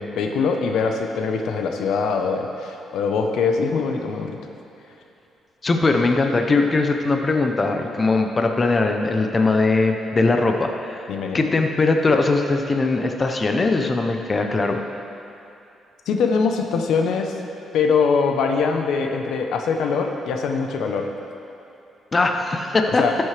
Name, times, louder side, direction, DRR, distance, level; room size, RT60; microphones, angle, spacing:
voice 1, 0.0-4.4 11.1-11.4 16.1-17.3 17.7-21.1 23.0-23.2, left 5 dB, 80° left, 3 dB, 0.8 m, -22 dB
voice 2, 5.6-14.8 22.1-23.0, left 3 dB, 30° left, 4 dB, 0.7 m, -20 dB
13.0 x 7.8 x 3.3 m, 2.8 s
cardioid pair, 90°, 0 cm